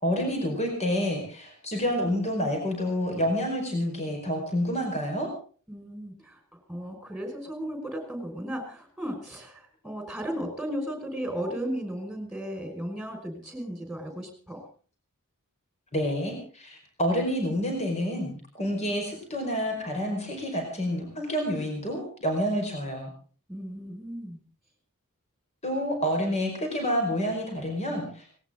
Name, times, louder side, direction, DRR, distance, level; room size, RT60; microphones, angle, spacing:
voice 1, 0.0-5.3 15.9-23.1 25.6-28.2, equal, 30° left, 3 dB, 5.1 m, -28 dB
voice 2, 5.7-6.4 6.7-14.6 23.5-24.4, equal, ahead, 5 dB, 5.5 m, -35 dB
19.0 x 18.5 x 3.8 m, 0.41 s
head